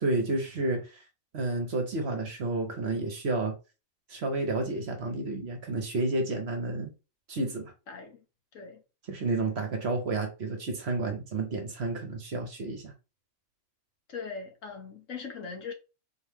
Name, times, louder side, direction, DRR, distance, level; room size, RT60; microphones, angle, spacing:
voice 1, 0.0-1.0 1.3-3.6 4.1-6.9 7.3-7.7 9.1-12.9, right 2 dB, 50° right, 1.1 m, -31 dB
voice 2, 7.9-8.2 8.5-8.8 14.1-15.7, left 5 dB, 65° left, 1.5 m, -40 dB
4.2 x 3.0 x 3.5 m
omnidirectional pair, 1.5 m